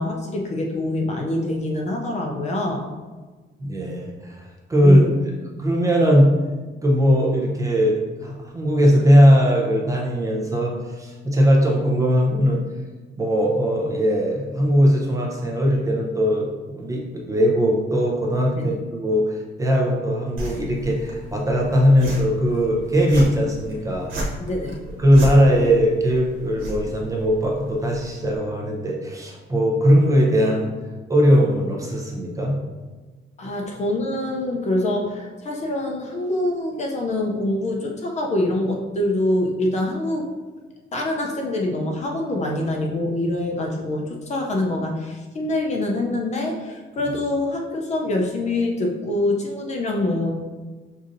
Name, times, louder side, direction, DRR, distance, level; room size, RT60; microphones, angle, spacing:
voice 1, 0.0-2.9 4.8-5.1 18.6-18.8 24.4-24.8 33.4-40.3 40.9-50.3, left 1 dB, 35° left, 1 dB, 0.5 m, -25 dB
voice 2, 3.6-5.3 5.6-6.3 6.8-12.6 13.2-24.1 25.0-30.7 31.1-32.6 33.4-33.5, equal, 15° right, -2 dB, 0.6 m, -19 dB
sound 1, 20.4-28.4, right 1 dB, 85° right, 1.0 m, -34 dB
6.2 x 2.7 x 2.5 m, 1.3 s
cardioid pair, 165°, 20 cm